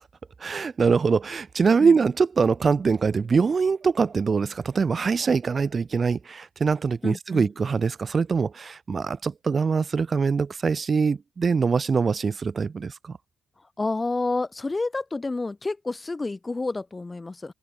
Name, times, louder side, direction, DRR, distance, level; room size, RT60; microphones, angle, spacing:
voice 1, 0.4-13.2, right 5 dB, 40° right, 1.7 m, -23 dB
voice 2, 7.0-7.5 13.8-17.5, left 3 dB, 20° left, 1.2 m, -29 dB
open air
cardioid pair, 90°, 0 cm